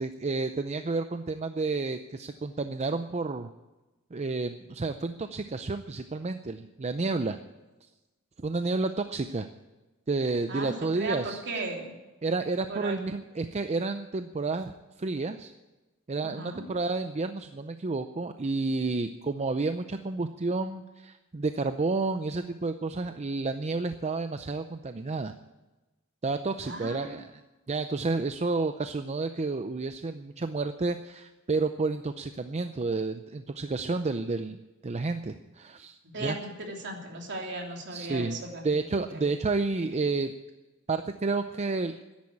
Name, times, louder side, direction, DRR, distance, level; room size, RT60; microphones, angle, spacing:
voice 1, 0.0-3.5 4.1-7.4 8.4-9.5 10.1-11.4 12.2-14.7 15.0-15.5 16.1-25.3 26.2-27.3 27.7-34.6 34.8-36.4 37.9-38.4 38.6-40.3 40.9-42.0, right 3 dB, 30° right, 9 dB, 0.5 m, -30 dB
voice 2, 10.5-11.9 12.7-13.0 16.2-16.6 26.6-27.1 36.0-38.8 39.1-39.3, right 2 dB, 55° right, 1 dB, 3.1 m, -36 dB
13.5 x 10.5 x 8.5 m, 1.1 s
head